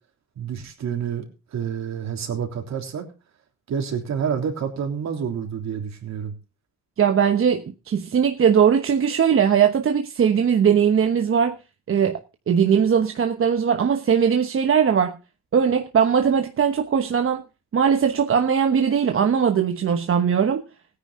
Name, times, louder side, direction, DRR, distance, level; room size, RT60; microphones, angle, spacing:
voice 1, 0.4-1.2 1.5-3.1 3.7-6.3, right 7 dB, 65° right, 3.5 m, -28 dB
voice 2, 7.0-11.6 11.9-15.2 15.5-17.4 17.7-20.6, right 7 dB, 45° right, 1.1 m, -20 dB
16.5 x 9.9 x 3.8 m
cardioid pair, 90°, 30 cm